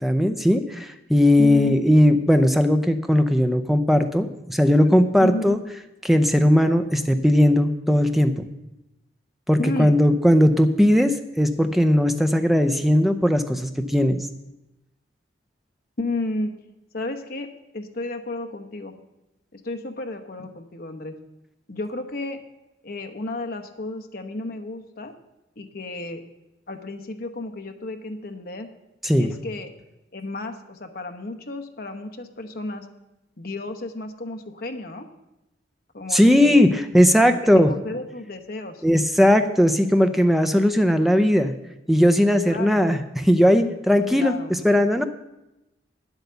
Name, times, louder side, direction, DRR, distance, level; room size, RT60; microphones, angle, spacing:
voice 1, 0.0-5.6 6.0-8.4 9.5-14.2 29.0-29.3 36.1-37.7 38.8-41.5 41.9-45.0, equal, ahead, 7 dB, 0.5 m, -18 dB
voice 2, 1.4-1.8 5.2-5.6 9.6-10.0 16.0-16.5 16.9-19.0 19.5-21.2 21.7-22.4 22.8-25.1 25.6-26.2 26.7-28.7 29.2-29.7 30.1-32.9 33.4-35.1 35.9-36.7 37.7-38.8 42.5-42.8 44.1-44.5, left 2 dB, 50° left, 6 dB, 1.0 m, -32 dB
9.7 x 8.0 x 6.9 m, 0.94 s
head